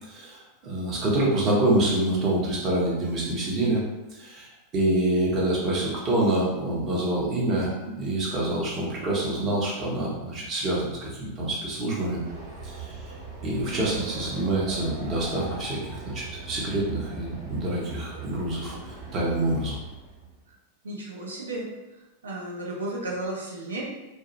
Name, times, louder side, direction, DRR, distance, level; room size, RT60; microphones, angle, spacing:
voice 1, 0.0-3.8 4.1-12.2 12.6-13.0 13.4-19.8, right 1 dB, 30° right, -5 dB, 0.8 m, -26 dB
Train, 12.2-20.4, right 4 dB, 50° right, 1.2 m, -40 dB
voice 2, 20.8-23.8, right 1 dB, 70° right, -3 dB, 0.5 m, -34 dB
2.3 x 2.1 x 2.8 m, 1.1 s
figure-of-eight pair, 90°, 0 cm